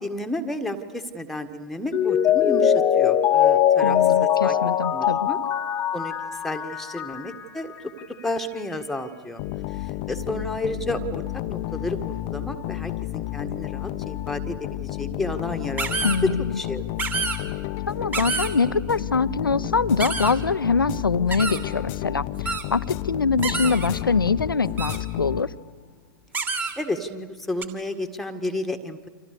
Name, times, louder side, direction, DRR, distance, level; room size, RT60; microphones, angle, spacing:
voice 1, 0.0-5.4 5.9-6.1 6.4-9.4 9.8-16.1 16.6-16.8 26.8-29.1, left 1 dB, ahead, 6 dB, 1.7 m, -32 dB
Mallet percussion, 1.9-7.4 7.8-7.9, left 10 dB, 20° left, 1.2 m, -21 dB
voice 2, 3.8-5.3 16.0-16.6 17.9-25.5, left 4 dB, 75° left, 17 dB, 0.8 m, -24 dB
sound 1, 9.4-25.8, left 15 dB, 35° left, 0.8 m, -31 dB
sound 2, 15.8-16.2 17.0-17.4 18.1-18.5 20.0-20.3 21.3-21.6 22.5-22.6 23.4-23.9 24.8-25.0 26.3-26.7 27.6-27.7, right 4 dB, 15° right, 2.6 m, -27 dB
29.5 x 26.5 x 6.8 m, 1.5 s
figure-of-eight pair, 110°, 11 cm